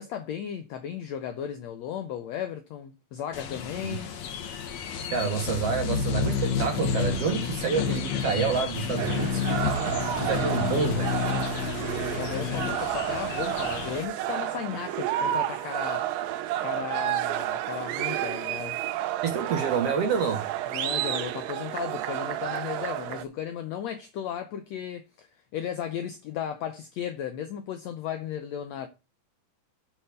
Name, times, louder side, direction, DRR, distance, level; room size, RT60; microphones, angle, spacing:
voice 1, 0.0-4.1 12.2-16.3 16.6-18.8 20.7-28.9, left 9 dB, 90° left, 1.5 m, -35 dB
sound 1, 3.3-14.0, left 6 dB, 65° left, 2.0 m, -30 dB
voice 2, 5.1-11.1 19.2-20.5, right 6 dB, 65° right, 1.6 m, -28 dB
sound 2, 9.0-23.2, right 13 dB, 85° right, 2.4 m, -31 dB
8.0 x 4.4 x 6.7 m
omnidirectional pair, 3.9 m